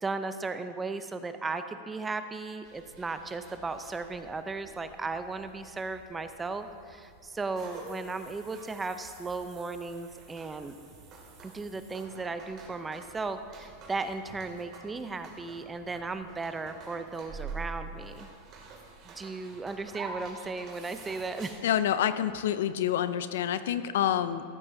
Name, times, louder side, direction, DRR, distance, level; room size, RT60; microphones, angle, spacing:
voice 1, 0.0-10.7 11.4-18.3 19.0-21.6, right 3 dB, 15° right, 9 dB, 0.6 m, -36 dB
sound 1, 2.6-21.6, right 4 dB, 40° right, 2.4 m, -47 dB
voice 2, 21.6-24.4, left 10 dB, 80° left, 12 dB, 0.5 m, -27 dB
14.5 x 12.5 x 2.7 m, 2.2 s
supercardioid pair, 125°, 0 cm